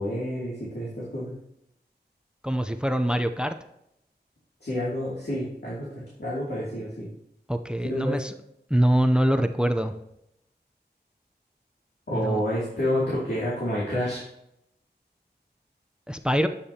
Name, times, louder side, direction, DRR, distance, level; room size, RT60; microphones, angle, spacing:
voice 1, 0.0-1.3 4.6-7.1 7.8-8.2 12.1-14.2, equal, 70° left, -7 dB, 2.6 m, -29 dB
voice 2, 2.4-3.6 7.5-8.3 8.7-9.9 12.1-12.4 16.1-16.5, equal, 5° right, 8 dB, 0.6 m, -24 dB
9.7 x 8.5 x 2.9 m, 0.80 s
wide cardioid pair, 50°, 18 cm